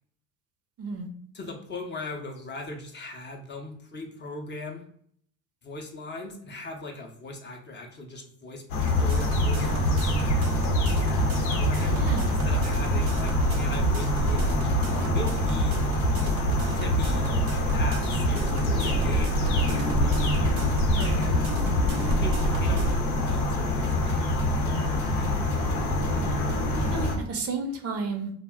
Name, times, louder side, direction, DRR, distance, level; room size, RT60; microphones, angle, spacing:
voice 1, 1.3-4.8 5.6-10.2 11.6-15.9 16.8-17.3 17.7-20.4 21.0-21.4 22.2-22.9 23.2-25.5, left 2 dB, 25° left, 2 dB, 0.5 m, -40 dB
sound 1, 8.7-27.2, left 1 dB, 85° left, 0.7 m, -26 dB
sound 2, 8.9-23.0, right 2 dB, 85° right, 0.6 m, -28 dB
voice 2, 11.9-12.3 20.9-21.2 26.8-28.3, right 4 dB, 35° right, 5 dB, 0.5 m, -32 dB
2.3 x 2.1 x 3.4 m, 0.63 s
hypercardioid pair, 75°, 42 cm